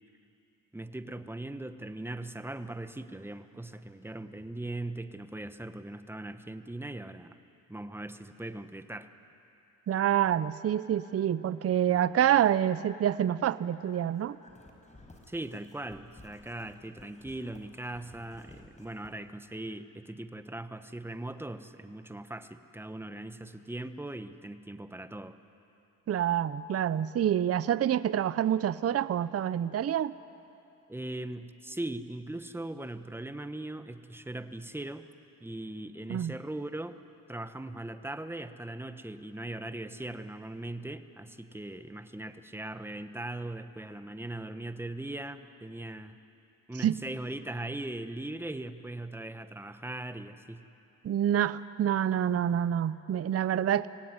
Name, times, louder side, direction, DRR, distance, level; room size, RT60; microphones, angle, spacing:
voice 1, 0.7-7.4 7.7-9.1 15.3-25.3 30.9-35.1 35.4-37.0 37.3-46.2 46.7-50.6, right 1 dB, 5° right, 10 dB, 1.1 m, -39 dB
voice 2, 9.9-14.4 26.1-30.1 36.1-36.3 46.8-47.0 51.0-53.9, right 10 dB, 45° right, 16 dB, 0.6 m, -27 dB
sound 1, 13.7-19.2, left 2 dB, 20° left, 4.5 m, -55 dB
24.5 x 17.5 x 9.7 m, 2.8 s
cardioid pair, 85°, 35 cm